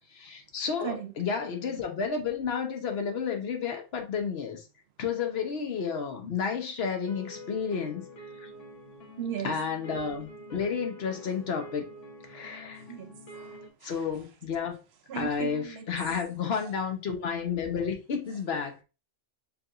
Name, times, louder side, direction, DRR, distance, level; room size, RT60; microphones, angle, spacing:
voice 1, 0.0-4.6 5.0-8.0 8.4-8.5 9.4-11.9 12.3-12.8 13.8-14.8 15.1-18.8, left 6 dB, 60° left, 1.0 m, -31 dB
sound 1, 7.0-13.7, left 1 dB, 90° left, 1.5 m, -46 dB
voice 2, 9.2-9.5 12.9-14.0 15.1-15.9, right 10 dB, 65° right, 0.8 m, -37 dB
4.7 x 3.3 x 2.4 m
omnidirectional pair, 1.2 m